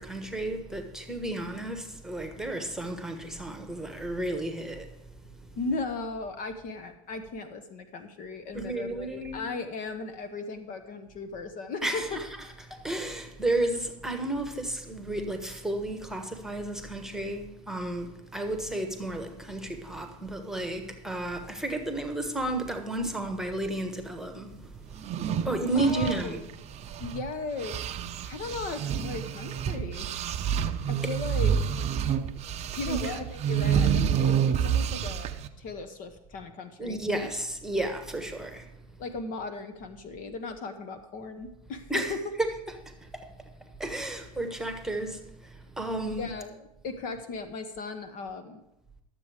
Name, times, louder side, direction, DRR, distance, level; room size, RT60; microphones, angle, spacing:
voice 1, 0.0-4.9 5.3-5.5 8.5-9.4 11.8-12.3 12.7-26.4 32.9-33.1 36.8-38.7 41.9-42.5 42.9-43.3 43.6-46.3, right 2 dB, 5° right, 1.3 m, -32 dB
voice 2, 5.6-12.2 25.7-26.4 27.0-27.8 28.2-30.1 30.9-31.5 32.8-37.0 39.0-42.2 46.2-48.6, left 3 dB, 45° left, 1.1 m, -37 dB
sound 1, 24.9-27.3 27.6-35.5, right 8 dB, 35° right, 0.7 m, -28 dB
12.0 x 7.5 x 4.9 m
hypercardioid pair, 100°, 19 cm